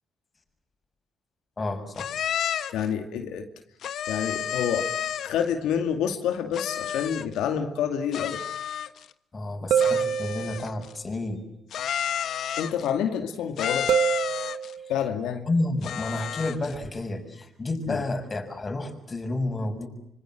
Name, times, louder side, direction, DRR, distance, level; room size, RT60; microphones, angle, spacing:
voice 1, 1.6-2.1 9.3-11.4 14.8-14.9 15.5-19.9, left 2 dB, 30° left, 6 dB, 6.5 m, -30 dB
sound 1, 2.0-2.9 3.8-5.4 6.5-7.4 8.1-9.1 9.8-10.9 11.7-12.9 13.6-14.7 15.8-16.7, left 9 dB, 70° left, 1.3 m, -31 dB
voice 2, 2.7-3.5 4.1-4.9 5.2-8.4 12.6-13.9 14.9-15.5 17.9-18.0, left 8 dB, 90° left, 5 dB, 2.4 m, -28 dB
sound 2, 7.3-7.4 9.7-10.9 13.9-15.0, right 8 dB, 75° right, 1.2 m, -25 dB
26.0 x 26.0 x 7.8 m, 0.80 s
cardioid pair, 90°, 0 cm